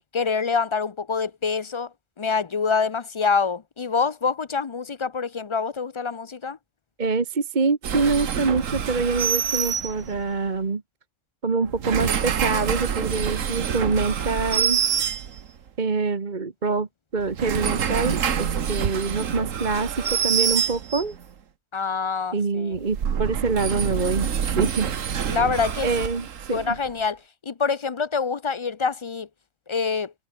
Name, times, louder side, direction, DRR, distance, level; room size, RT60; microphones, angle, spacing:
voice 1, 0.1-1.9 2.2-6.6 21.7-22.8 25.3-25.9 26.5-27.2 27.5-29.3 29.7-30.1, left 5 dB, 40° left, 0.4 m, -25 dB
voice 2, 7.0-10.8 11.4-14.8 15.8-16.9 17.1-19.9 20.2-21.1 22.3-24.9 25.8-26.7, right 4 dB, 35° right, 1.5 m, -25 dB
sound 1, 7.8-10.4 11.6-15.7 17.2-21.2 22.7-26.9, right 8 dB, 75° right, 1.6 m, -26 dB
omnidirectional pair, 1.3 m